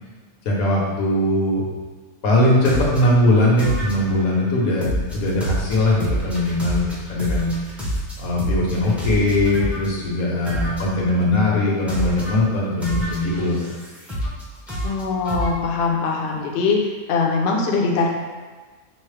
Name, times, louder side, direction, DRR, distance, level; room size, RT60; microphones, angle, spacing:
voice 1, 0.4-1.6 2.2-7.5 8.2-13.7, left 1 dB, 85° left, -4 dB, 1.3 m, -20 dB
sound 1, 2.6-3.1 3.6-4.3 4.8-9.9 10.4-11.0 11.9-12.4 12.8-14.4 14.7-15.5, equal, ahead, 0.4 m, -27 dB
voice 2, 14.8-16.8 17.1-18.1, left 4 dB, 60° left, -1 dB, 0.7 m, -21 dB
5.3 x 2.0 x 3.2 m, 1.4 s
omnidirectional pair, 1.4 m